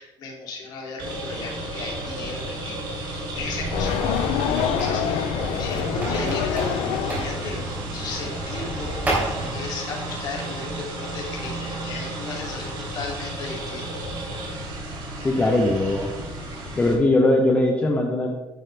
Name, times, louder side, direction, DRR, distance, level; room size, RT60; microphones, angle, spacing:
voice 1, 0.0-5.2 5.6-7.6 7.9-9.2 9.5-14.0, left 4 dB, 45° left, -1 dB, 2.9 m, -35 dB
sound 1, 1.0-16.9, right 1 dB, 55° right, 3.5 m, -33 dB
sound 2, 3.3-9.5, right 1 dB, 15° right, 3.4 m, -31 dB
sound 3, 3.7-8.2, left 10 dB, 85° left, 0.7 m, -27 dB
voice 2, 15.2-16.1 16.7-18.3, left 2 dB, 15° left, 1 dB, 0.8 m, -20 dB
11.5 x 10.0 x 3.4 m, 1.2 s
cardioid pair, 175°, 10 cm